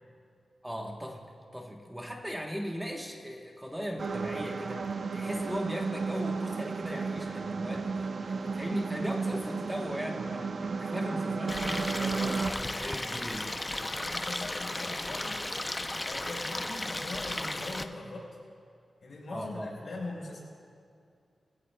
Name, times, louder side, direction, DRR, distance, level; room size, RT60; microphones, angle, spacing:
voice 1, 0.6-4.9 5.1-13.5 19.3-19.8, equal, 5° right, 1 dB, 1.1 m, -38 dB
sound 1, 4.0-12.5, right 4 dB, 60° right, 0.6 m, -33 dB
Stream, 11.5-17.8, left 1 dB, 20° left, 0.6 m, -35 dB
voice 2, 13.7-15.4 16.0-18.4 19.0-20.4, left 2 dB, 60° left, -2 dB, 4.2 m, -41 dB
23.0 x 16.0 x 2.3 m, 2.3 s
wide cardioid pair, 95°, 0 cm